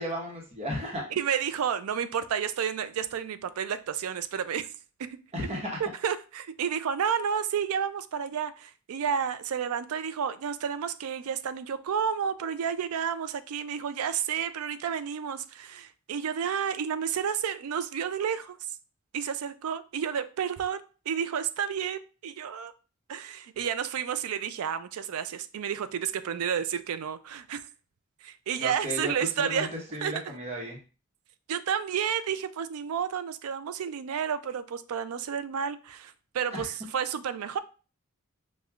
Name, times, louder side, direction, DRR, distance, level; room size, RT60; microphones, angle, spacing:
voice 1, 0.0-1.0 5.3-5.8 28.6-29.1 29.4-30.8 36.5-36.6, equal, 30° right, 1.0 m, -34 dB
voice 2, 1.1-4.7 5.0-5.2 5.8-18.7 19.1-22.7 23.1-27.6 28.2-29.7 30.0-30.4 31.5-37.6, right 7 dB, 85° right, 0.4 m, -31 dB
6.0 x 2.3 x 2.3 m
head